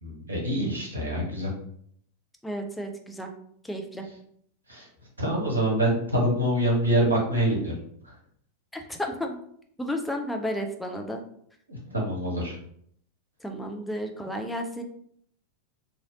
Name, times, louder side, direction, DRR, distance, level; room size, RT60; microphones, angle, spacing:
voice 1, 0.0-1.5 4.7-4.9 5.2-7.7 11.7-12.6, right 1 dB, 80° right, -3 dB, 1.1 m, -25 dB
voice 2, 2.4-3.3 3.6-4.0 8.7-9.4 9.8-11.2 13.4-14.8, equal, 5° left, 3 dB, 0.5 m, -32 dB
3.1 x 2.6 x 2.7 m, 0.66 s
figure-of-eight pair, 90°, 0 cm